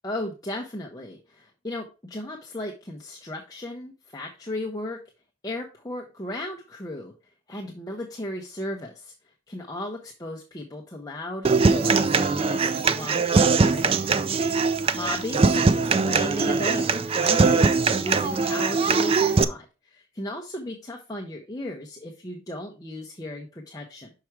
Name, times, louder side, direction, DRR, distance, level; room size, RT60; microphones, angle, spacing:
voice 1, 0.0-5.0 5.4-14.4 14.6-24.1, left 1 dB, 20° left, 1 dB, 0.7 m, -36 dB
Human voice / Acoustic guitar, 11.4-19.4, right 4 dB, 25° right, 0.3 m, -21 dB
6.0 x 4.8 x 4.6 m, 0.31 s
head